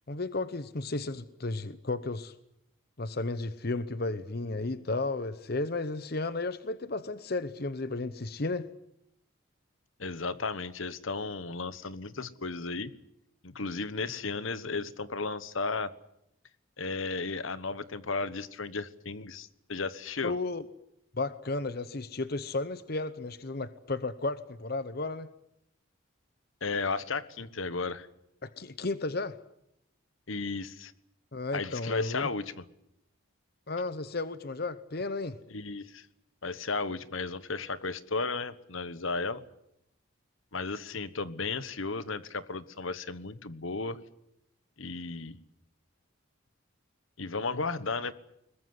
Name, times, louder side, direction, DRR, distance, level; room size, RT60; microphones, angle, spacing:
voice 1, 0.1-2.3 3.0-8.7 20.2-20.6 21.1-25.3 28.4-29.4 31.3-32.3 33.7-35.4, left 3 dB, 50° left, 13 dB, 0.9 m, -33 dB
voice 2, 10.0-12.9 13.4-15.9 16.8-20.3 26.6-28.1 30.3-30.9 31.5-32.4 35.5-36.1 36.4-39.4 40.5-44.0 44.8-45.4 47.2-48.1, left 4 dB, 75° left, 15 dB, 1.3 m, -34 dB
22.5 x 20.5 x 9.8 m, 0.80 s
head